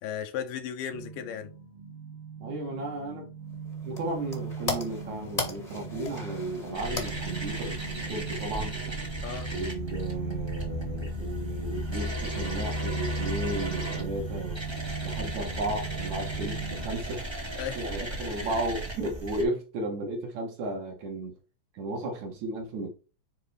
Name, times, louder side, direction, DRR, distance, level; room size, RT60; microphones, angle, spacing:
voice 1, 0.0-1.5 9.2-9.5 17.6-17.8 18.1-18.5, left 8 dB, 80° left, 2.5 m, -36 dB
sound 1, 0.9-17.0, right 6 dB, 85° right, 3.2 m, -39 dB
voice 2, 2.4-3.3 3.8-8.8 9.5-14.6 15.0-17.3 17.8-21.4 21.7-22.9, right 2 dB, 60° right, 2.7 m, -34 dB
sound 2, 3.5-8.8, left 3 dB, 20° left, 1.0 m, -38 dB
sound 3, 6.7-19.4, equal, 35° right, 0.4 m, -35 dB
9.3 x 3.8 x 3.4 m
omnidirectional pair, 3.9 m